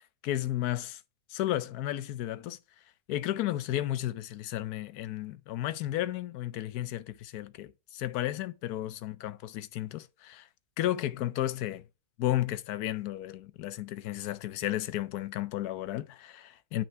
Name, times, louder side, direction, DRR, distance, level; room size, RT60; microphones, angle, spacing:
voice 1, 0.2-1.0 1.3-2.6 3.1-10.5 10.8-11.8 12.2-16.8, left 14 dB, 85° left, 1.2 m, -33 dB
8.9 x 5.9 x 4.5 m
omnidirectional pair, 1.6 m